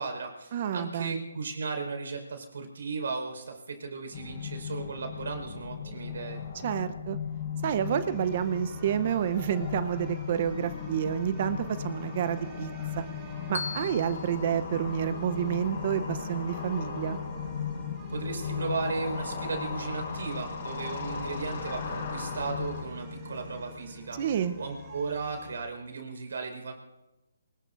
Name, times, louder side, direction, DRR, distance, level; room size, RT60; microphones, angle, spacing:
voice 1, 0.0-6.4 18.1-24.2 24.6-26.7, right 4 dB, 70° right, 5 dB, 4.9 m, -35 dB
voice 2, 0.5-1.2 6.6-7.2 7.6-12.7 13.0-13.1 13.5-17.2 24.2-24.6, right 9 dB, 40° right, 13 dB, 0.8 m, -29 dB
sound 1, 4.1-22.8, left 6 dB, 45° left, 5.3 m, -37 dB
sound 2, 7.6-25.6, left 4 dB, 20° right, 6.5 m, -44 dB
Bell, 13.5-15.7, left 4 dB, 70° left, 0.8 m, -41 dB
27.5 x 19.5 x 2.6 m, 0.99 s
hypercardioid pair, 155°, 0 cm